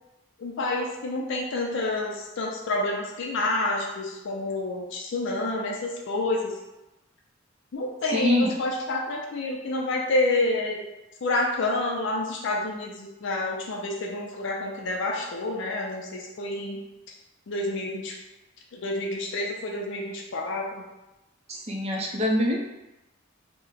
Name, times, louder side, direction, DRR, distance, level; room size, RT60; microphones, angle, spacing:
voice 1, 0.4-6.6 7.7-10.8 11.2-16.8 17.5-18.1 18.7-20.9, left 2 dB, 65° left, -1 dB, 0.5 m, -28 dB
voice 2, 8.1-8.5 21.5-22.6, left 1 dB, 30° right, 0 dB, 0.5 m, -24 dB
2.9 x 2.1 x 3.7 m, 1.0 s
head